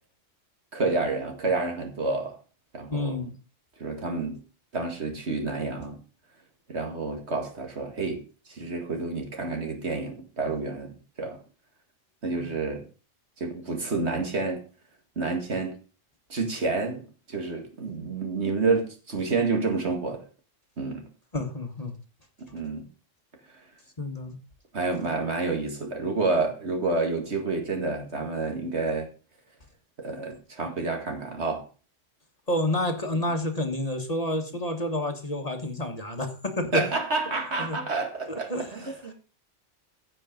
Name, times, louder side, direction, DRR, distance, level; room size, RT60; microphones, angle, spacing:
voice 1, 0.7-2.3 2.7-3.2 3.8-4.4 4.7-6.0 6.7-8.2 8.5-11.4 12.2-12.8 13.4-14.6 15.2-15.8 16.3-20.2 20.8-21.0 22.5-22.9 24.7-29.1 30.0-31.6 36.7-39.1, right 3 dB, 60° right, 3 dB, 2.3 m, -29 dB
voice 2, 2.9-3.3 12.4-12.5 21.3-21.9 24.0-24.4 32.5-36.8 37.6-37.8 38.3-38.7, left 1 dB, 30° left, 4 dB, 1.5 m, -29 dB
15.5 x 5.6 x 5.2 m, 0.36 s
omnidirectional pair, 1.3 m